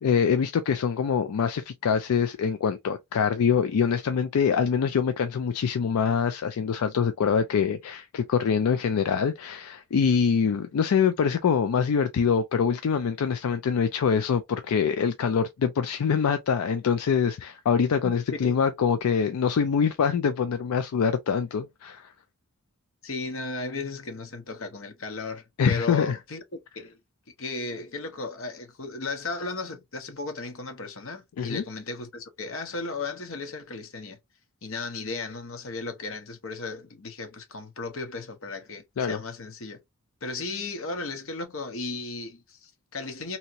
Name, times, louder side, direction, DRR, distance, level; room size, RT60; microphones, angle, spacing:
voice 1, 0.0-22.1 25.6-26.2 31.4-31.6 39.0-39.2, left 6 dB, 80° left, 0.4 m, -24 dB
voice 2, 23.0-26.4 26.7-27.0 27.4-34.2 34.6-39.8 40.2-43.4, left 3 dB, 65° left, 0.9 m, -35 dB
2.8 x 2.8 x 2.5 m
head